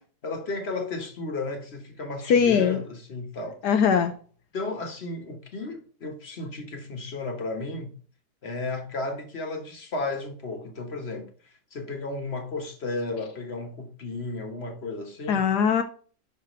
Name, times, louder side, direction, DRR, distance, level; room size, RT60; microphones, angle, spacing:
voice 1, 0.2-3.6 4.5-7.9 8.4-15.4, left 2 dB, 40° left, 1.4 m, -34 dB
voice 2, 2.3-2.8 3.6-4.1 15.3-15.8, left 7 dB, 75° left, 1.2 m, -21 dB
6.0 x 5.9 x 3.0 m
omnidirectional pair, 1.9 m